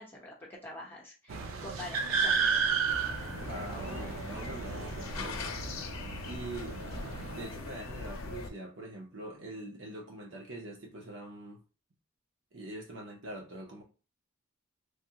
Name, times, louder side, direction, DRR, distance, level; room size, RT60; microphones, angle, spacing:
voice 1, 0.0-2.6, left 1 dB, 10° left, 0.9 m, -46 dB
sound 1, 1.3-7.5, right 5 dB, 90° right, 0.5 m, -33 dB
sound 2, 2.9-8.5, left 3 dB, 90° left, 0.6 m, -41 dB
voice 2, 3.5-5.5 6.2-6.8 7.3-11.6 12.5-13.8, right 1 dB, 70° right, 0.8 m, -44 dB
3.4 x 2.2 x 2.8 m
head